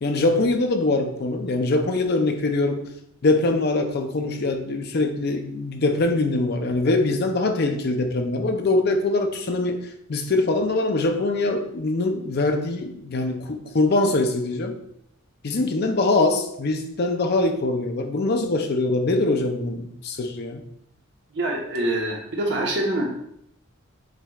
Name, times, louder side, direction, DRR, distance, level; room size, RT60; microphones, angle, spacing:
voice 1, 0.0-2.9 3.2-14.8 15.4-20.6, left 2 dB, 50° left, 6 dB, 0.5 m, -23 dB
voice 2, 21.3-23.1, right 1 dB, 60° right, -1 dB, 1.0 m, -25 dB
7.4 x 3.1 x 2.3 m, 0.74 s
head